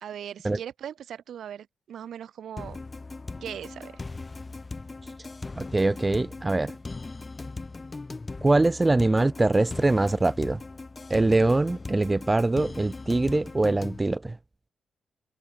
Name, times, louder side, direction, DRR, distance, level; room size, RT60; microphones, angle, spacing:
voice 1, 0.0-2.8 3.4-4.0, right 9 dB, 75° right, 1.2 m, -39 dB
sound 1, 2.6-14.0, left 3 dB, 25° left, 0.8 m, -39 dB
voice 2, 5.6-6.7 8.4-10.6 11.1-14.4, right 2 dB, 20° right, 0.4 m, -23 dB
cardioid pair, 95°, 0 cm